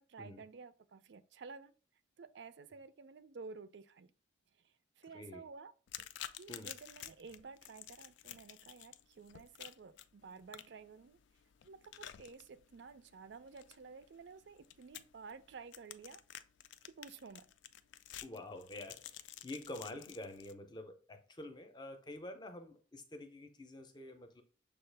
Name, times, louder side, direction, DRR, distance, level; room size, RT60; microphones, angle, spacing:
voice 1, 0.0-1.7 2.2-4.1 4.6-5.7 6.4-11.2 11.6-16.2 16.8-17.5, right 4 dB, 65° right, 0.4 m, -52 dB
sound 1, 5.9-20.5, left 11 dB, 70° left, 0.3 m, -52 dB
voice 2, 18.2-24.4, left 1 dB, 20° left, 0.6 m, -48 dB
6.5 x 2.4 x 3.3 m
head